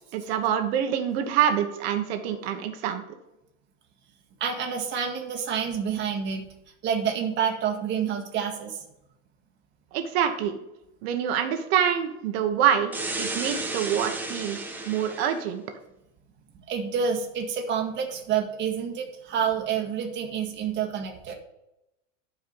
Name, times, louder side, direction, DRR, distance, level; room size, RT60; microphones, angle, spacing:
voice 1, 0.1-3.0 9.9-10.5 11.0-12.9 13.2-14.6 14.8-15.6, right 9 dB, 55° right, 6 dB, 1.4 m, -25 dB
voice 2, 4.4-6.5 6.8-8.8 16.7-21.3, right 7 dB, 30° right, 1 dB, 1.8 m, -28 dB
sound 1, 12.9-15.4, right 2 dB, 5° right, 0.8 m, -33 dB
12.0 x 4.9 x 5.5 m, 0.87 s
supercardioid pair, 140°, 38 cm